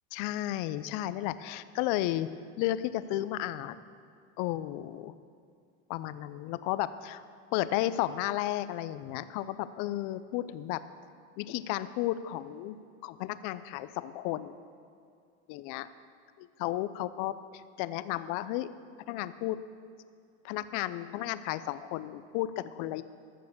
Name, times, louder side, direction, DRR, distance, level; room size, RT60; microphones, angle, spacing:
voice 1, 0.1-2.3 2.6-3.7 4.4-5.1 5.9-7.2 7.5-10.8 11.4-12.8 13.0-14.5 15.5-15.9 16.6-18.7 19.1-19.6 20.4-23.0, left 14 dB, 60° left, 14 dB, 0.6 m, -33 dB
13.5 x 6.8 x 6.8 m, 2.3 s
supercardioid pair, 110°, 36 cm